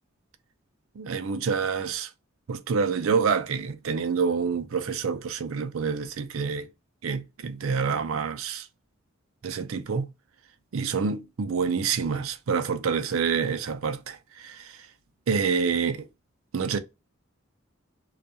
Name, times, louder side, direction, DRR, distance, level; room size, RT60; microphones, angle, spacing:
voice 1, 0.9-2.1 2.5-6.7 7.0-8.7 9.4-10.1 10.7-14.9 15.3-16.1 16.5-16.8, right 5 dB, 80° right, 0.5 m, -27 dB
2.3 x 2.3 x 2.7 m
head